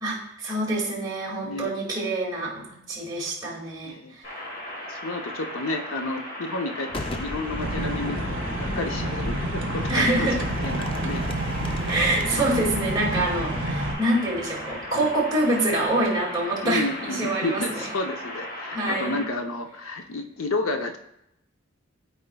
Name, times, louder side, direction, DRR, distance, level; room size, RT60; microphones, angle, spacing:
voice 1, 0.0-4.2 9.9-10.4 11.9-17.8 18.7-19.2, right 1 dB, 20° right, -5 dB, 2.2 m, -26 dB
voice 2, 3.9-4.2 4.9-10.3 10.6-11.3 16.6-21.0, left 2 dB, 80° left, 5 dB, 0.7 m, -31 dB
sound 1, 4.2-19.2, equal, 45° left, 1.9 m, -37 dB
Boom, 6.9-16.5, left 2 dB, 25° left, 0.4 m, -37 dB
sound 2, 7.6-13.9, right 1 dB, 65° right, 0.9 m, -29 dB
13.0 x 4.4 x 2.3 m, 0.80 s
head